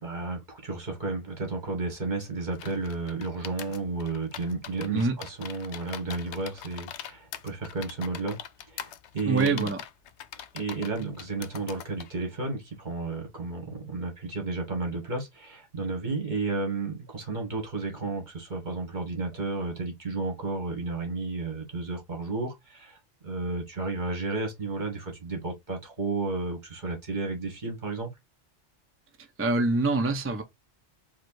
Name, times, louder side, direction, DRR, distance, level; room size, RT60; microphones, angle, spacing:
voice 1, 0.0-8.4 8.7-9.7 10.5-23.0 23.2-28.1, right 3 dB, 40° right, 1.8 m, -32 dB
sound 1, 2.5-12.1, left 9 dB, 75° left, 0.9 m, -42 dB
voice 2, 9.2-9.8 29.4-30.4, right 3 dB, 20° right, 0.3 m, -25 dB
4.8 x 2.4 x 4.6 m
omnidirectional pair, 1.2 m